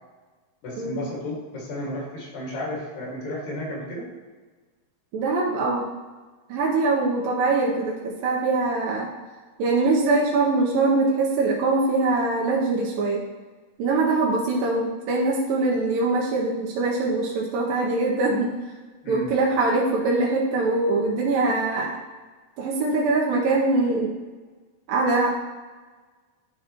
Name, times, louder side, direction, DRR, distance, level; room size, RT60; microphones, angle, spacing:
voice 1, 0.6-4.1 19.0-19.3, left 1 dB, 75° left, -4 dB, 3.7 m, -33 dB
voice 2, 5.1-5.9 6.5-9.1 9.6-13.2 13.8-18.5 19.1-22.0 22.6-24.1 24.9-25.3, right 3 dB, 85° right, -3 dB, 2.5 m, -23 dB
11.5 x 4.9 x 3.0 m, 1.3 s
omnidirectional pair, 4.0 m